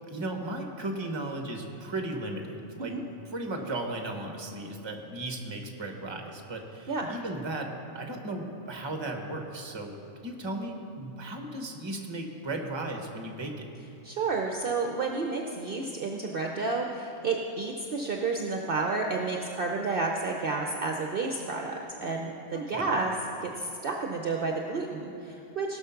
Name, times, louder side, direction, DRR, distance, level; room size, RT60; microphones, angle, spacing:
voice 1, 0.1-3.0 3.3-10.0 10.2-13.7 22.5-23.0, right 2 dB, 25° right, 3 dB, 1.0 m, -36 dB
voice 2, 14.0-23.1 23.4-25.8, right 3 dB, 50° right, 1 dB, 0.8 m, -31 dB
17.5 x 6.4 x 5.7 m, 2.8 s
omnidirectional pair, 1.3 m